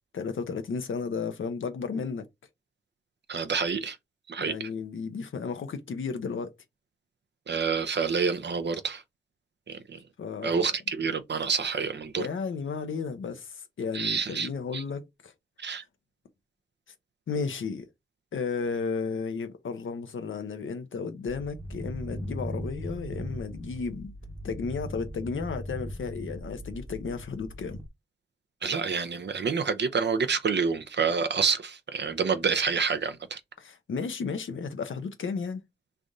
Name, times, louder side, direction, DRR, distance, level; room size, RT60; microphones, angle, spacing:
voice 1, 0.1-2.3 4.4-6.5 10.2-10.7 12.2-15.3 17.3-17.9 18.3-24.1 24.4-27.8 33.6-35.6, left 5 dB, 85° left, 0.7 m, -33 dB
voice 2, 3.3-4.0 4.3-4.7 7.5-9.0 9.7-10.0 10.4-12.3 13.9-14.8 15.6-15.8 28.6-33.4, right 5 dB, 60° right, 0.6 m, -28 dB
sound 1, 21.3-27.9, equal, 10° right, 0.9 m, -38 dB
3.3 x 2.6 x 3.6 m
cardioid pair, 40°, 20 cm